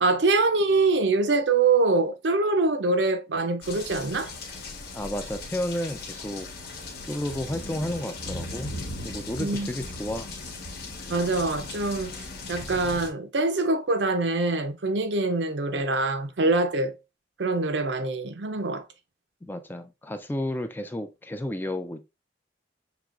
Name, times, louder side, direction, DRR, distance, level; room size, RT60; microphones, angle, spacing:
voice 1, 0.0-4.3 9.4-9.7 11.1-12.1 12.5-17.0 17.4-18.8, right 3 dB, 80° right, 0.6 m, -24 dB
sound 1, 3.6-13.1, left 2 dB, 60° left, 1.0 m, -38 dB
voice 2, 4.9-6.5 7.1-8.7 9.0-10.3 19.5-22.0, left 1 dB, 10° left, 0.3 m, -32 dB
5.9 x 2.9 x 2.4 m
head